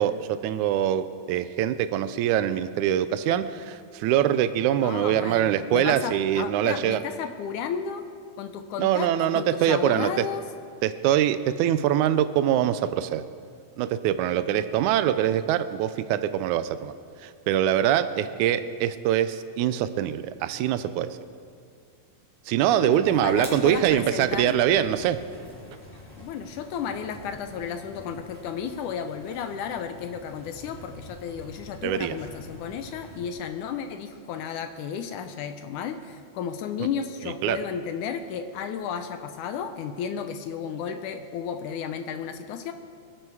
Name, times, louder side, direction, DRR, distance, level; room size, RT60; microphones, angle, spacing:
voice 1, 0.0-7.0 8.8-10.3 10.8-13.2 13.8-16.9 17.2-21.2 22.5-25.2 31.8-32.2 36.8-36.9 37.2-37.6, right 11 dB, 85° right, 12 dB, 1.7 m, -24 dB
voice 2, 4.8-8.1 8.4-10.4 22.8-24.6 26.2-42.7, left 7 dB, 75° left, 8 dB, 2.0 m, -33 dB
sound 1, 23.0-33.3, equal, 5° left, 3.3 m, -46 dB
24.5 x 11.0 x 4.8 m, 2.2 s
omnidirectional pair, 4.0 m